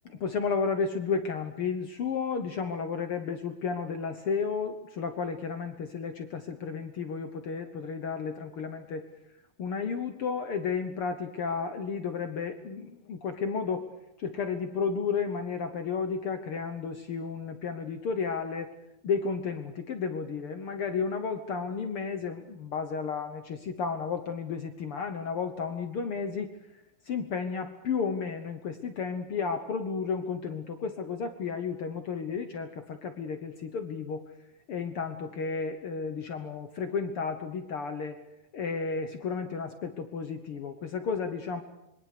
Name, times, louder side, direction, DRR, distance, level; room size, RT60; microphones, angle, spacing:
voice 1, 0.0-9.0 9.6-13.8 14.2-18.7 19.0-26.5 27.1-34.2 34.7-38.2 38.5-41.6, left 5 dB, 75° left, 8 dB, 1.2 m, -32 dB
26.5 x 22.5 x 6.7 m, 0.86 s
omnidirectional pair, 4.3 m